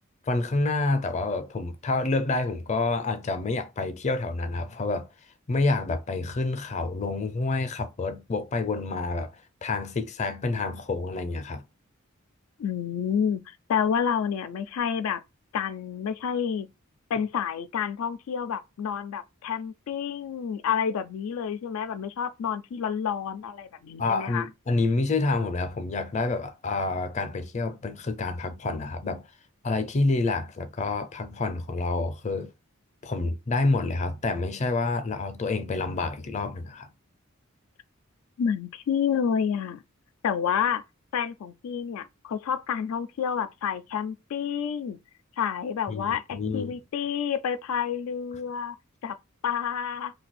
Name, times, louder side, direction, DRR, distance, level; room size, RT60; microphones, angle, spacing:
voice 1, 0.3-5.1 5.5-9.3 9.6-11.6 24.0-29.2 29.6-32.5 33.0-36.9 45.9-46.8, left 3 dB, 35° left, 0.5 m, -28 dB
voice 2, 12.6-15.2 15.5-16.7 17.1-24.4 38.4-39.8 40.2-40.8 41.1-45.0 45.4-46.2 46.5-48.8 49.0-49.2 49.4-50.1, left 7 dB, 90° left, 0.3 m, -29 dB
2.6 x 2.3 x 4.1 m
head